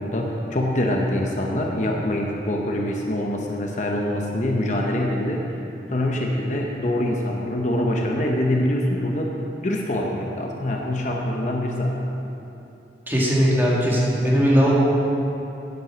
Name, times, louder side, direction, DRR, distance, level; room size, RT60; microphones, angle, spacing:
voice 1, 0.0-5.5 5.9-12.1, left 1 dB, 45° left, 0 dB, 0.9 m, -24 dB
voice 2, 13.1-14.7, equal, 10° right, -6 dB, 2.0 m, -19 dB
9.6 x 9.3 x 6.2 m, 3.0 s
head